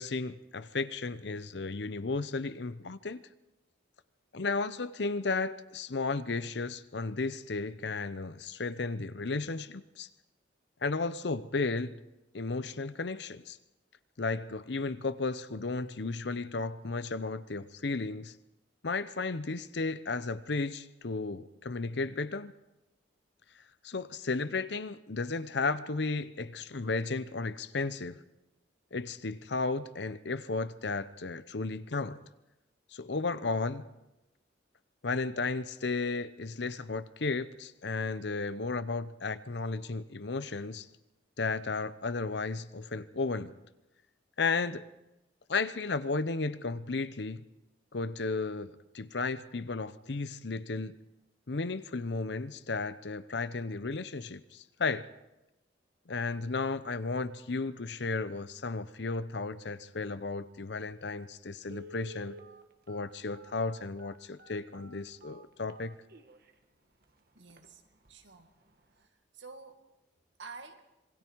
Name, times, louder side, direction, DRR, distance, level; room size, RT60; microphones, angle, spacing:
voice 1, 0.0-3.2 4.3-10.1 10.8-12.0 12.3-13.6 14.2-18.3 18.8-22.5 23.8-28.2 28.9-32.2 32.9-33.8 35.0-40.9 41.4-43.5 44.4-44.8 45.5-47.5 47.9-51.0 51.5-55.1 56.1-62.4 62.9-66.0, left 3 dB, 70° left, 0.8 m, -34 dB
Telephone, 60.9-61.0 61.6-66.5 67.0-67.1 67.5-67.7 68.0-68.3 68.7-68.8, right 1 dB, 55° right, 1.5 m, -51 dB
voice 2, 67.3-67.8 68.1-68.5 69.0-69.9 70.4-70.8, right 4 dB, 80° right, 2.1 m, -49 dB
26.5 x 21.5 x 4.7 m
head